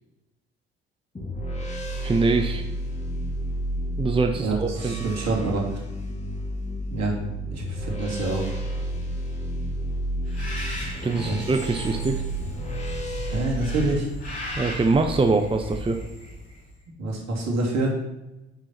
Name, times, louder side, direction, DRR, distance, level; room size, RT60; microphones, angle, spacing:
sound 1, 1.1-14.0, right 1 dB, 20° left, 2.1 m, -31 dB
voice 1, 2.0-2.6 4.0-5.1 11.0-12.2 14.6-16.0, right 3 dB, 15° right, 5 dB, 0.8 m, -23 dB
voice 2, 4.4-5.8 6.9-7.1 7.5-8.5 11.1-11.5 13.3-14.1 17.0-17.9, right 2 dB, 55° right, -1 dB, 2.5 m, -26 dB
Bird, 10.3-16.7, left 1 dB, 85° left, 2.1 m, -37 dB
8.1 x 5.5 x 4.3 m, 0.99 s
hypercardioid pair, 50°, 31 cm